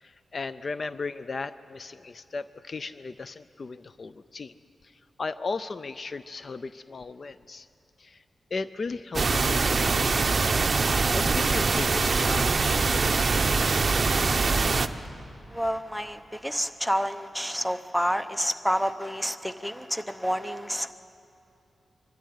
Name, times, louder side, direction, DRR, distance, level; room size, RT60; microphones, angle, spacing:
voice 1, 0.0-4.5 5.2-7.7 8.0-8.2 8.5-10.3 11.1-13.5, left 4 dB, 45° left, 14 dB, 0.4 m, -36 dB
sound 1, 9.1-14.9, right 4 dB, 40° right, 0.7 m, -23 dB
voice 2, 15.5-20.9, equal, 5° left, 11 dB, 0.7 m, -29 dB
24.0 x 12.5 x 9.4 m, 2.8 s
wide cardioid pair, 115°, 0 cm